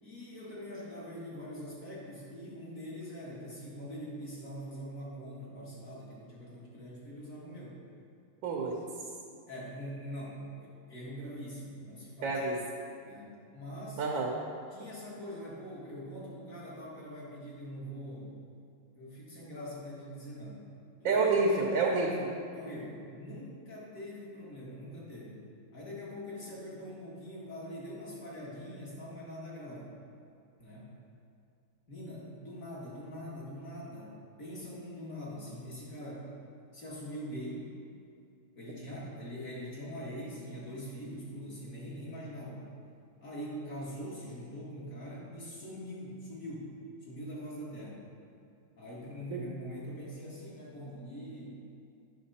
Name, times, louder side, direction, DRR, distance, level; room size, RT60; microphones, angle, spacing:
voice 1, 0.0-7.8 9.5-12.4 13.0-14.0 14.7-18.4 19.0-20.6 21.0-21.1 22.5-25.4 25.7-29.9 30.6-30.9 31.9-36.3 36.7-37.6 38.5-42.6 43.2-46.7 47.0-48.0 48.8-51.7, equal, 45° left, -6 dB, 2.1 m, -43 dB
voice 2, 8.4-8.8 12.2-12.6 14.0-14.3 21.0-22.3 49.3-49.4, right 3 dB, 80° right, -2 dB, 1.7 m, -28 dB
9.4 x 6.2 x 4.1 m, 2.4 s
omnidirectional pair, 2.1 m